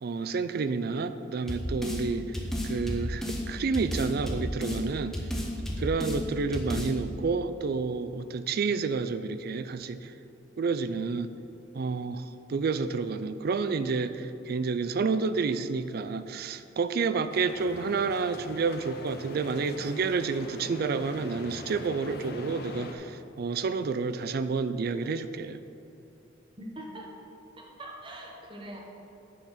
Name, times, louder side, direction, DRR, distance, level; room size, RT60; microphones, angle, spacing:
voice 1, 0.0-2.3 2.6-5.2 5.8-10.1 10.6-11.3 11.7-25.6, right 4 dB, 55° right, 12 dB, 0.4 m, -30 dB
sound 1, 1.5-2.0 2.3-3.4 3.7-4.8 5.1-6.2 6.5-6.9, left 1 dB, ahead, 0.9 m, -32 dB
sound 2, 17.3-22.9, left 2 dB, 55° left, 0.7 m, -43 dB
voice 2, 26.6-27.1 27.6-28.8, right 1 dB, 25° right, 0 dB, 1.3 m, -42 dB
9.2 x 5.7 x 5.8 m, 2.7 s
head